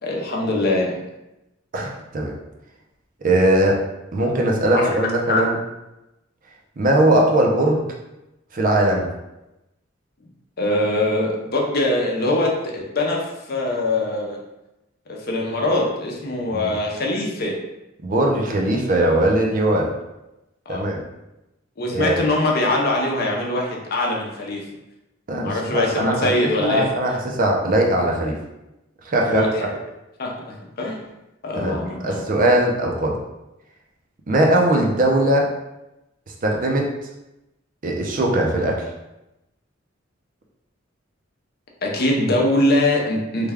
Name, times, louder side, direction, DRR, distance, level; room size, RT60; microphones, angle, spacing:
voice 1, 0.0-1.1 4.7-4.9 5.3-5.4 10.6-13.2 13.5-14.4 15.1-17.6 20.7-20.8 21.8-24.7 25.4-27.2 29.3-29.8 30.2-31.0 31.4-32.2 41.8-43.5, left 1 dB, 50° left, -1 dB, 0.6 m, -22 dB
voice 2, 1.7-2.3 3.2-3.8 4.1-5.5 6.8-7.8 8.5-9.1 16.5-16.7 18.0-19.9 20.7-21.0 21.9-22.2 25.3-28.4 29.0-29.4 31.5-33.1 34.3-35.5 36.4-36.9 37.8-38.8, right 1 dB, 45° right, 0 dB, 0.5 m, -20 dB
3.3 x 2.2 x 3.4 m, 0.94 s
head